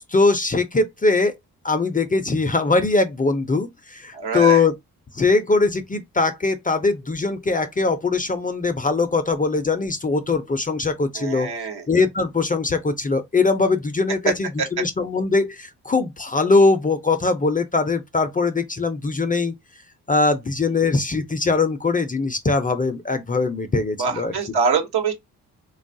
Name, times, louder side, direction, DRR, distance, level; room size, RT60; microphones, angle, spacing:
voice 1, 0.1-1.3 1.6-4.7 5.1-11.5 11.9-19.5 20.1-24.3, left 3 dB, 20° left, 0.5 m, -21 dB
voice 2, 4.1-4.6 11.1-11.9 14.6-14.7 24.0-25.1, right 5 dB, 75° right, 1.1 m, -24 dB
3.3 x 2.3 x 2.6 m
cardioid pair, 85°, 39 cm